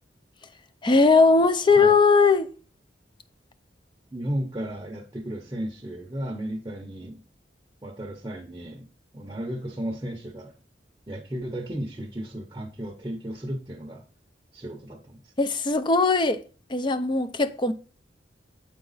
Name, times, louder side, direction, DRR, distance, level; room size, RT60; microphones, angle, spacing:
voice 1, 0.8-2.5 15.4-16.4 16.7-17.7, left 4 dB, 25° left, 0.4 m, -19 dB
voice 2, 4.1-7.2 7.8-8.9 9.1-10.5 11.1-14.0 14.5-15.3, right 1 dB, 20° right, 0.7 m, -34 dB
8.5 x 4.0 x 3.9 m
head